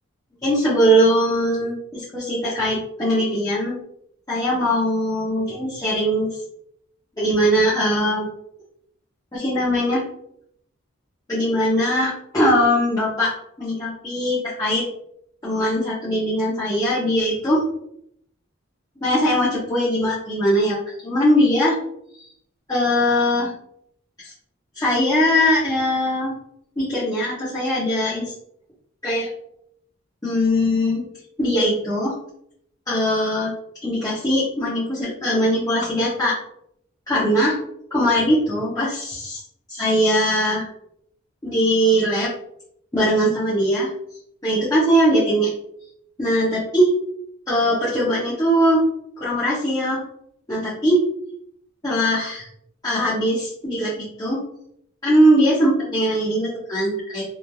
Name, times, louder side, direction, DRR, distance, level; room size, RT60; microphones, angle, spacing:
voice 1, 0.4-3.8 4.3-6.3 7.2-8.3 9.3-10.0 11.3-13.3 13.6-14.8 15.4-17.7 19.0-21.8 22.1-22.2 22.7-23.5 24.2-24.3 24.7-26.3 26.8-28.3 29.0-29.3 30.2-31.1 31.4-32.1 32.9-33.5 33.8-36.3 37.1-37.6 37.9-39.4 39.7-40.7 41.4-42.3 42.9-43.9 44.4-45.5 46.2-46.9 47.5-48.9 49.2-50.0 50.5-51.0 51.8-52.5 52.8-54.4 55.0-57.2, equal, 15° left, -9 dB, 0.7 m, -20 dB
3.0 x 2.4 x 2.3 m, 0.73 s
head